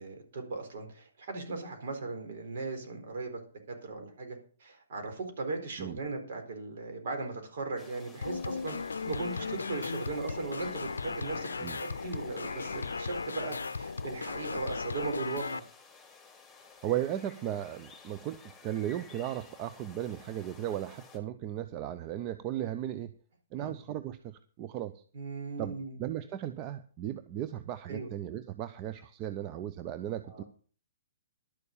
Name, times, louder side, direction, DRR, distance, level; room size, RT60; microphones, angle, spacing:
voice 1, 0.0-3.4 3.7-8.8 9.1-11.5 11.7-15.6 23.5-23.7 25.1-26.0 27.9-28.1 30.2-30.4, right 3 dB, 55° right, 4 dB, 4.0 m, -38 dB
sound 1, 7.8-21.2, left 4 dB, 5° left, 3.5 m, -54 dB
sound 2, 8.2-15.6, left 4 dB, 80° left, 0.5 m, -36 dB
voice 2, 16.8-23.2 23.5-25.0 25.6-25.7 26.0-30.4, right 11 dB, 30° right, 11 dB, 0.6 m, -36 dB
11.5 x 6.8 x 7.3 m, 0.41 s
figure-of-eight pair, 125°, 0 cm